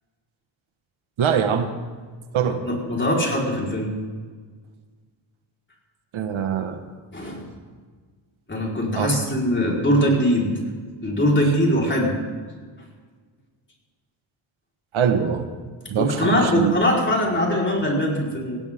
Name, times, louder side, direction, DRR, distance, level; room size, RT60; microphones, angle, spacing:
voice 1, 1.2-1.7 2.3-2.6 6.1-6.8 8.9-9.1 14.9-15.4 15.9-16.7, right 8 dB, 75° right, 7 dB, 1.5 m, -22 dB
voice 2, 2.6-3.9 7.1-7.4 8.5-10.5 11.0-12.1 16.0-18.6, equal, 25° left, -2 dB, 4.4 m, -21 dB
17.5 x 17.5 x 3.7 m, 1.5 s
cardioid pair, 90°, 48 cm